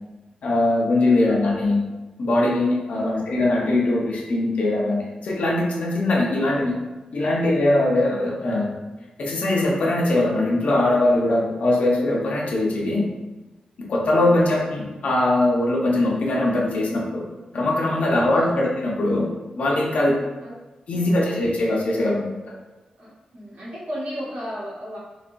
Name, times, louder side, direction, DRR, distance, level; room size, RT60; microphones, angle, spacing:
voice 1, 0.4-1.8 2.2-6.8 7.1-8.7 9.2-13.0 13.9-17.3 17.5-19.3 19.6-20.1 20.9-22.5, left 2 dB, 70° left, -3 dB, 0.7 m, -21 dB
voice 2, 14.2-14.5 17.9-18.5 20.4-20.5 20.9-21.1 23.0-25.0, equal, 80° right, -8 dB, 1.4 m, -35 dB
4.1 x 2.3 x 2.5 m, 1.1 s
wide cardioid pair, 135°, 2 cm